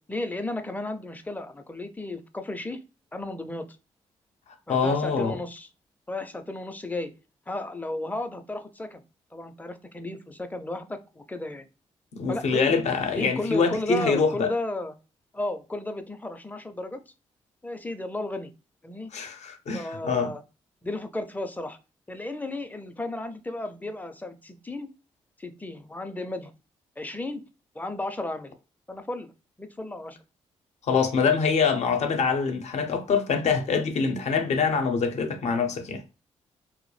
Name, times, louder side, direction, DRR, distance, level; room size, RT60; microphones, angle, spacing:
voice 1, 0.0-2.8 3.1-3.7 4.7-5.7 6.1-7.1 7.5-9.0 9.3-11.7 12.3-12.7 13.1-14.9 15.3-17.0 17.6-18.5 18.8-19.1 19.7-20.4 20.8-21.8 22.1-24.9 25.4-26.5 27.0-27.4 27.7-28.5 28.9-29.3 29.6-30.2, left 2 dB, 15° left, 0.4 m, -34 dB
voice 2, 4.7-5.3 12.1-14.5 19.1-20.3 30.9-36.0, left 5 dB, 60° left, 0.6 m, -24 dB
2.2 x 2.0 x 3.1 m
supercardioid pair, 50°, 13 cm